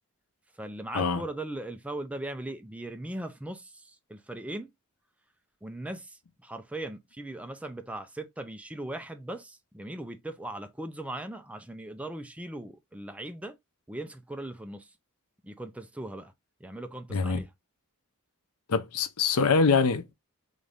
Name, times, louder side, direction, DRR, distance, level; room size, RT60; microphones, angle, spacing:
voice 1, 0.5-4.7 5.6-13.6 13.9-14.9 15.4-16.3 16.6-17.5, right 1 dB, 5° right, 0.4 m, -39 dB
voice 2, 18.7-20.1, left 5 dB, 80° left, 0.6 m, -24 dB
3.9 x 2.5 x 3.3 m
head